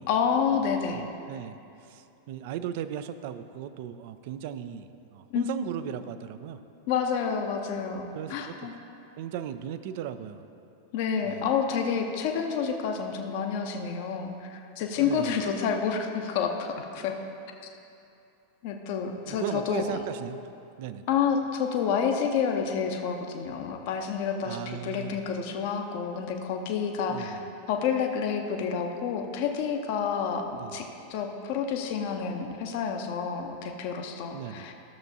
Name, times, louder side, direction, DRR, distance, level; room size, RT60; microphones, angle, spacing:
voice 1, 0.1-1.0 5.3-5.4 6.9-8.7 10.9-17.2 18.6-20.0 21.1-27.4 27.7-34.7, left 6 dB, 45° left, 4 dB, 0.7 m, -29 dB
voice 2, 0.9-1.6 1.8-6.6 8.1-8.7 9.2-10.4 11.2-11.5 15.0-15.4 19.3-20.4 20.8-21.1 24.4-25.2 27.1-27.5 30.6-30.8 34.3-34.7, right 9 dB, 50° right, 12 dB, 0.4 m, -37 dB
13.5 x 6.9 x 2.7 m, 2.7 s
figure-of-eight pair, 90°, 0 cm